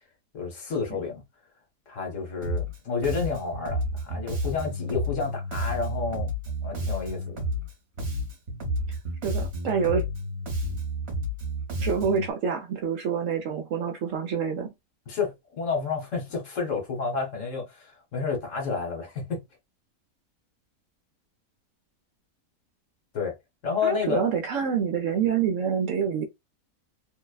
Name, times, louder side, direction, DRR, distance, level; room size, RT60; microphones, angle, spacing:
voice 1, 0.3-1.2 1.9-6.3 6.6-7.4 15.1-17.7 18.1-19.4 23.1-23.3 23.6-24.3, left 5 dB, 60° left, 1.2 m, -30 dB
Bass guitar, 2.4-2.8 3.0-7.7 8.0-12.3, equal, 50° right, 1.1 m, -31 dB
voice 2, 9.2-10.0 11.8-14.7 23.8-26.3, right 7 dB, 70° right, 0.8 m, -27 dB
2.6 x 2.1 x 2.2 m
omnidirectional pair, 1.6 m